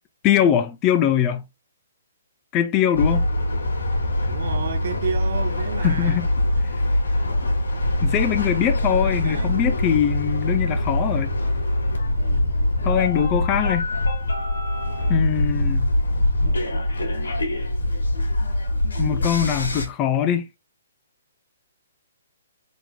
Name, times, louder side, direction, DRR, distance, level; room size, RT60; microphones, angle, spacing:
voice 1, 0.2-1.4 2.5-3.3 5.8-6.3 8.0-11.3 12.8-13.9 15.1-15.9 19.0-20.5, left 10 dB, 25° left, 0.4 m, -22 dB
sound 1, 2.9-19.9, left 1 dB, 90° left, 1.4 m, -23 dB
voice 2, 4.3-6.3 8.8-9.5 12.1-12.6 14.9-15.2, right 6 dB, 60° right, 0.8 m, -32 dB
3.7 x 2.9 x 3.5 m
hypercardioid pair, 150°, 0 cm